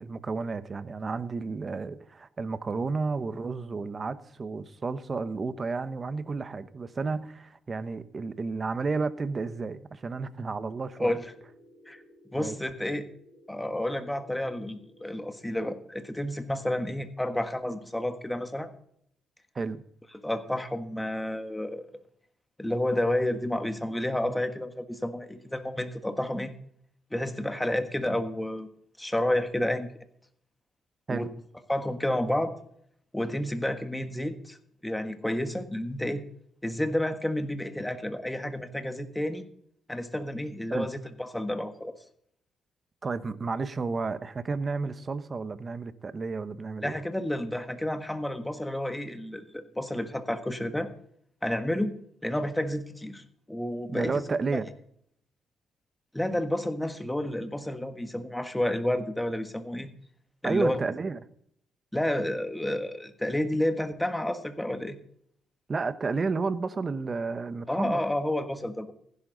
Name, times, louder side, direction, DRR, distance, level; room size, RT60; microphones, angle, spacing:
voice 1, 0.0-11.2 12.3-12.6 19.5-19.8 31.1-31.3 40.7-40.9 43.0-47.0 53.9-54.7 60.4-61.2 65.7-68.0, right 4 dB, 35° right, 1.0 m, -32 dB
sound 1, 10.8-15.7, equal, 25° left, 5.7 m, -56 dB
voice 2, 11.0-11.3 11.9-12.0 12.3-13.1 13.5-18.7 20.2-21.8 22.6-26.5 27.1-28.7 29.0-29.9 31.1-31.3 31.7-32.5 33.1-34.6 34.8-36.2 36.6-39.4 39.9-41.9 46.8-50.9 51.4-51.9 52.2-54.2 54.5-54.6 56.1-59.9 60.4-60.8 61.9-65.0 67.7-68.9, left 1 dB, 10° left, 1.5 m, -30 dB
15.5 x 11.0 x 3.9 m
cardioid pair, 90°, 0 cm